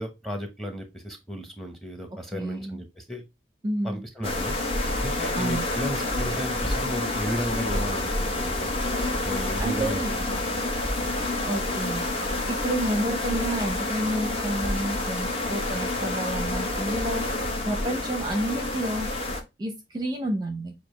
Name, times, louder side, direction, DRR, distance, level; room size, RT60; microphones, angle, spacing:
voice 1, 0.0-3.2 3.8-4.6 5.0-8.7 9.2-10.0 10.3-10.6 11.0-11.2, equal, ahead, 5 dB, 0.9 m, -34 dB
voice 2, 2.3-2.8 3.6-4.0 5.4-5.6 9.6-10.2 11.4-12.0 12.5-19.1 19.6-20.7, right 1 dB, 25° right, 3 dB, 0.6 m, -30 dB
sound 1, 4.2-19.4, left 2 dB, 30° left, 0.8 m, -28 dB
6.9 x 2.4 x 3.1 m, 0.23 s
head